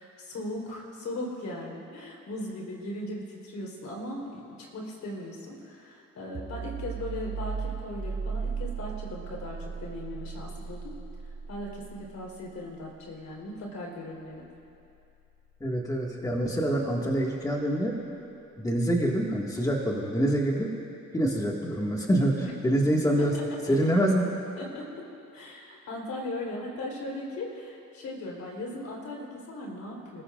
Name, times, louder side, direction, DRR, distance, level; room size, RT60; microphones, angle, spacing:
voice 1, 0.0-10.9 11.2-14.5 22.4-22.5 23.2-23.8 24.6-25.1 25.3-30.2, left 1 dB, 65° left, -2 dB, 4.0 m, -38 dB
sound 1, 6.3-17.8, right 5 dB, 40° right, 1.6 m, -39 dB
voice 2, 15.6-18.0 18.6-20.7 21.1-23.3 23.7-24.3, right 1 dB, 10° left, -2 dB, 1.9 m, -26 dB
29.5 x 14.5 x 2.5 m, 2.6 s
cardioid pair, 90°, 30 cm